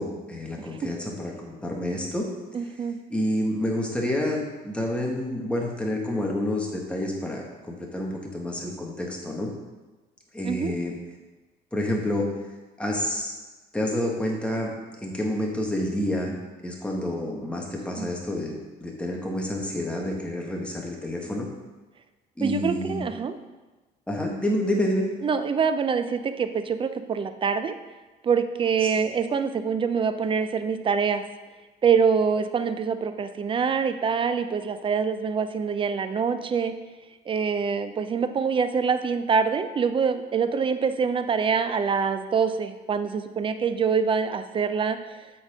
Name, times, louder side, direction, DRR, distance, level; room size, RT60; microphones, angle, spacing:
voice 1, 0.0-2.3 3.1-9.5 10.3-10.9 11.7-12.3 12.8-13.4 13.7-16.3 16.6-21.5 22.4-23.0 24.1-25.1, left 1 dB, 5° left, -1 dB, 1.5 m, -28 dB
voice 2, 2.5-3.0 10.4-10.7 18.0-18.1 22.4-23.3 25.2-27.7 28.2-31.2 31.8-36.7 37.3-45.0, right 6 dB, 30° right, 10 dB, 0.5 m, -25 dB
8.1 x 4.1 x 4.9 m, 1.2 s
cardioid pair, 110°, 17 cm